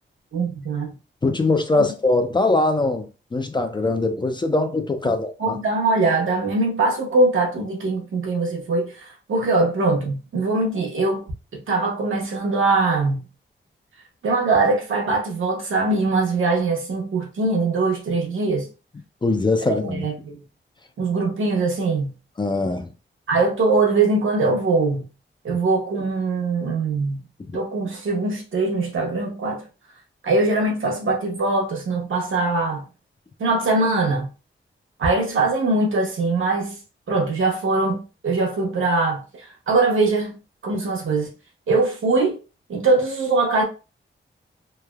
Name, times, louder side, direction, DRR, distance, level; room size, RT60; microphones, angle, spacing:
voice 1, 0.3-0.9 5.4-11.2 11.5-13.2 14.2-18.7 19.6-20.4 21.0-22.1 23.3-25.1 25.4-27.2 27.5-29.6 30.2-32.8 33.4-34.3 35.0-36.8 37.1-40.3 40.6-41.3 41.7-42.4 42.7-43.6, right 3 dB, 80° right, 0.9 m, -22 dB
voice 2, 1.2-5.6 19.2-20.1 22.4-22.9, left 2 dB, 25° left, 0.4 m, -22 dB
3.2 x 2.1 x 2.3 m
wide cardioid pair, 90°, 20 cm